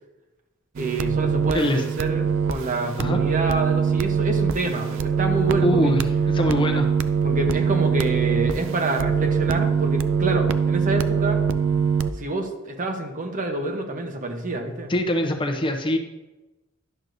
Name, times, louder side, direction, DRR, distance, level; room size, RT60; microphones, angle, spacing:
voice 1, 0.8-6.0 7.2-11.4 12.2-14.9, right 2 dB, 40° right, 4 dB, 0.8 m, -27 dB
sound 1, 0.8-12.1, right 6 dB, 65° right, 0.4 m, -23 dB
voice 2, 5.6-7.0 14.9-16.0, left 1 dB, 25° left, 4 dB, 0.6 m, -23 dB
11.0 x 6.3 x 2.6 m, 1.1 s
head